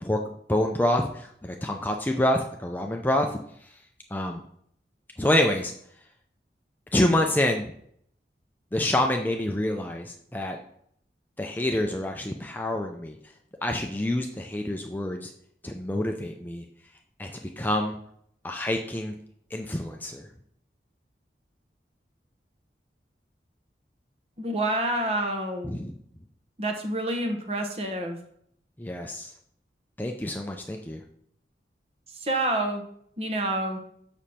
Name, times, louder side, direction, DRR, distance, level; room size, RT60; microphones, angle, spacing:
voice 1, 0.5-3.3 3.6-3.7 4.1-4.4 5.2-5.7 6.9-7.7 8.7-10.6 11.4-13.2 13.6-15.3 15.6-16.6 17.2-18.0 18.4-19.1 19.5-20.3 25.6-25.9 28.8-29.3 30.0-31.0, left 1 dB, 10° left, 3 dB, 0.5 m, -27 dB
voice 2, 24.4-25.7 26.6-28.2 32.2-32.8 33.2-33.8, right 1 dB, 35° right, 4 dB, 1.1 m, -28 dB
7.1 x 6.2 x 4.3 m, 0.67 s
head